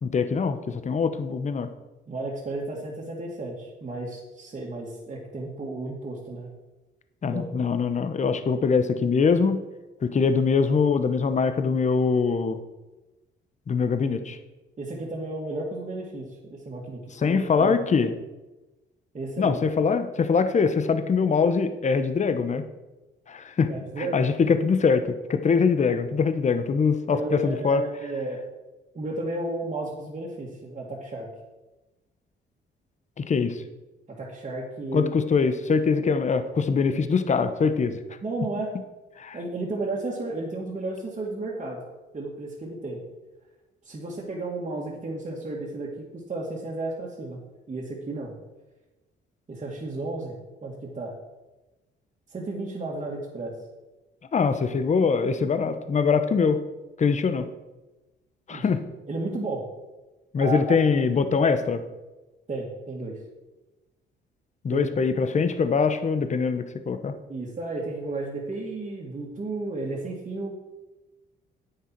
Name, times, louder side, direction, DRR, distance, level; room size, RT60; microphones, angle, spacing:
voice 1, 0.0-1.7 7.2-9.6 10.0-12.6 13.7-14.4 17.1-18.1 19.4-22.6 23.3-23.7 24.0-27.8 33.2-33.6 34.9-38.0 39.2-39.4 54.3-56.6 57.0-57.5 58.5-58.8 60.3-61.8 64.6-67.1, left 5 dB, 35° left, 9 dB, 0.9 m, -23 dB
voice 2, 2.1-6.5 7.3-7.6 14.8-17.7 19.1-19.6 23.7-24.2 27.1-28.4 28.9-31.3 34.2-35.1 38.2-38.7 39.3-41.8 42.1-43.0 43.8-47.4 47.7-48.3 49.5-50.3 50.6-51.1 52.3-53.5 58.5-58.6 59.1-59.6 60.4-60.8 62.5-63.2 64.7-64.9 67.3-70.5, right 2 dB, 35° right, -5 dB, 2.2 m, -33 dB
9.8 x 8.6 x 4.6 m, 1.1 s
cardioid pair, 90°, 20 cm